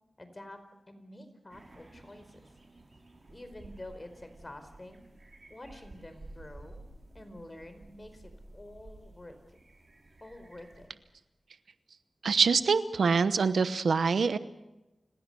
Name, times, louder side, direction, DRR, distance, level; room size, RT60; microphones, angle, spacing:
voice 1, 0.2-2.4 3.3-5.0 5.5-6.8 7.1-9.6 10.2-10.9, left 1 dB, 30° left, 8 dB, 4.7 m, -48 dB
sound 1, 1.5-10.9, right 2 dB, 45° right, 6.0 m, -53 dB
voice 2, 12.2-14.4, right 5 dB, 90° right, 13 dB, 1.0 m, -25 dB
29.5 x 17.0 x 6.9 m, 0.98 s
cardioid pair, 60°, 0 cm